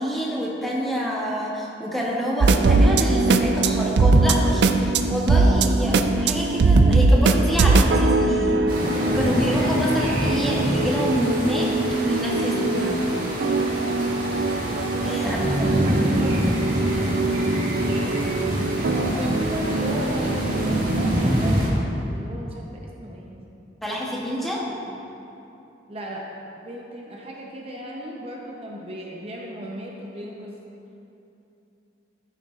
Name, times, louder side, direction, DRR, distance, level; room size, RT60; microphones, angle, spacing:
voice 1, 0.0-8.6 9.0-11.7 12.0-13.0 15.0-15.4 23.8-24.6, equal, ahead, -4 dB, 0.8 m, -27 dB
sound 1, 2.4-21.5, right 3 dB, 70° right, 0.4 m, -22 dB
sound 2, 8.7-21.7, equal, 50° right, 1.7 m, -26 dB
voice 2, 15.0-18.6 19.1-23.4 24.2-24.5 24.8-25.0 25.9-26.3 26.6-30.6, equal, 30° right, -2 dB, 0.7 m, -36 dB
12.5 x 6.6 x 2.4 m, 2.8 s
head